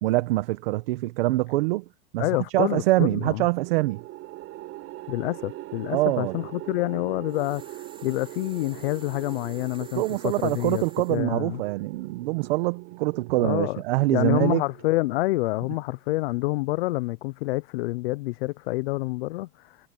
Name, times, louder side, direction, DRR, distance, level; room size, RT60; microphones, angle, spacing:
voice 1, 0.0-1.8 2.1-4.0 5.9-6.4 9.9-14.6, right 19 dB, 75° right, 1.4 m, -24 dB
voice 2, 2.2-3.5 5.1-11.6 13.4-13.8 14.1-19.8, left 20 dB, 80° left, 0.6 m, -28 dB
sound 1, 3.6-15.9, right 17 dB, 50° right, 7.0 m, -42 dB
sound 2, 7.3-11.2, right 5 dB, 15° right, 5.0 m, -51 dB
supercardioid pair, 115°, 30 cm